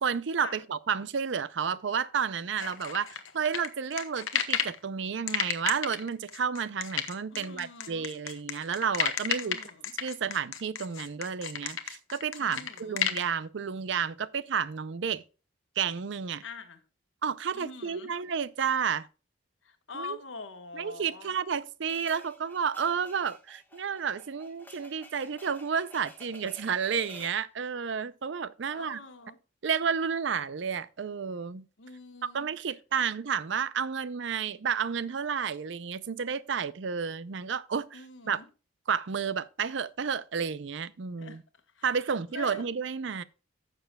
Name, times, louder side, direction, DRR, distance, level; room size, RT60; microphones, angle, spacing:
voice 1, 0.0-9.6 10.0-15.2 15.8-16.4 17.2-19.1 19.9-20.2 20.7-29.0 29.6-31.6 32.2-38.4 38.9-41.4 41.8-43.2, right 6 dB, 65° right, 0.5 m, -31 dB
sound 1, 2.6-4.8 5.3-13.2, left 8 dB, 90° left, 1.1 m, -32 dB
voice 2, 7.3-8.1 9.2-9.9 12.4-13.0 16.4-16.8 17.5-18.1 19.6-21.3 28.7-29.4 31.8-32.5 32.9-33.0 37.9-38.5 41.2-41.4 41.7-41.9 42.3-42.6, left 4 dB, 70° left, 1.4 m, -44 dB
sound 2, 21.9-27.4, left 2 dB, 10° left, 1.2 m, -52 dB
15.0 x 6.7 x 2.3 m
head